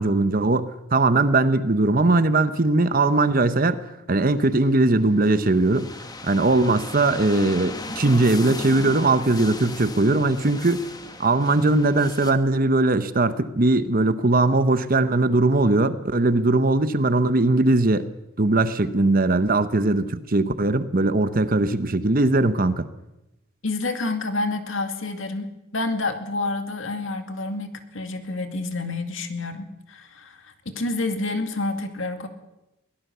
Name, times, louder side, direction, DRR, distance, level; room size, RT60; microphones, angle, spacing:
voice 1, 0.0-3.8 4.1-10.9 11.2-18.1 18.4-22.9, right 2 dB, 40° right, 12 dB, 0.9 m, -20 dB
sound 1, 4.5-12.3, left 2 dB, 15° left, 1.3 m, -37 dB
voice 2, 23.6-32.3, left 2 dB, 60° left, 7 dB, 2.3 m, -29 dB
22.5 x 17.0 x 6.8 m, 0.92 s
head